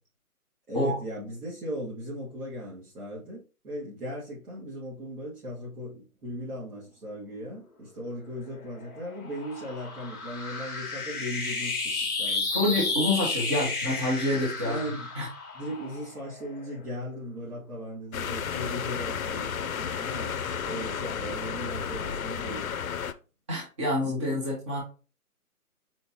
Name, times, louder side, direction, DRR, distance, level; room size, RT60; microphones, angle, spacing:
voice 1, 0.7-12.8 14.6-15.1 15.5-22.8 24.0-24.3, equal, 75° right, -7 dB, 2.4 m, -38 dB
sound 1, 8.3-17.0, left 3 dB, 15° left, 1.1 m, -33 dB
voice 2, 12.5-14.8 15.1-15.3 23.5-24.8, left 1 dB, 20° right, -4 dB, 0.9 m, -27 dB
sound 2, 18.1-23.1, left 7 dB, 70° left, 0.5 m, -32 dB
4.4 x 4.1 x 2.8 m, 0.34 s
figure-of-eight pair, 155°, 45 cm